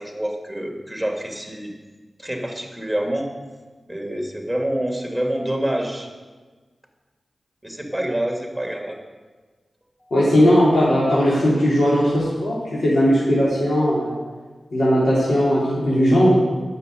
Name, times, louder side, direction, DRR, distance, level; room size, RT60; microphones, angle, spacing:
voice 1, 0.0-1.7 2.2-3.3 3.9-6.1 7.6-9.0 10.0-10.1, right 1 dB, ahead, 1 dB, 2.7 m, -27 dB
voice 2, 10.1-14.2 14.7-16.4, equal, 75° left, -9 dB, 3.7 m, -18 dB
11.0 x 6.9 x 9.4 m, 1.4 s
cardioid pair, 60°, 0 cm